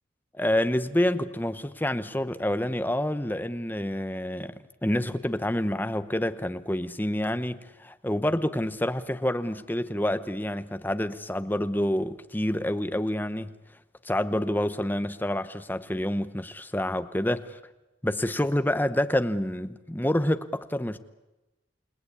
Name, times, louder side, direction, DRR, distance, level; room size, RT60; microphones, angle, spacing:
voice 1, 0.3-13.5 14.0-17.6 18.0-21.0, left 1 dB, 10° left, 0.8 m, -28 dB
29.0 x 18.5 x 8.5 m
head